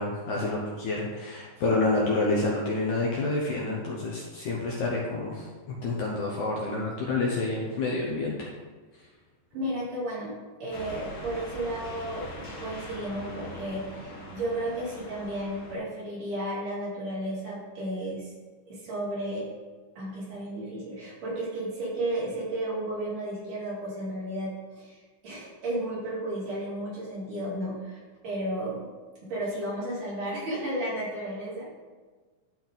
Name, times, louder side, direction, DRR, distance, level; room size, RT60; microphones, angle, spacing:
voice 1, 0.0-5.5 5.8-8.5, left 2 dB, 70° left, -3 dB, 2.1 m, -28 dB
voice 2, 9.5-10.3 10.6-18.3 18.7-19.5 20.0-25.0 25.2-28.0 28.2-28.8 29.2-31.7, right 1 dB, 60° right, -8 dB, 4.1 m, -33 dB
sound 1, 10.7-15.8, equal, 45° left, 1.9 m, -42 dB
12.0 x 4.5 x 4.0 m, 1.4 s
omnidirectional pair, 4.3 m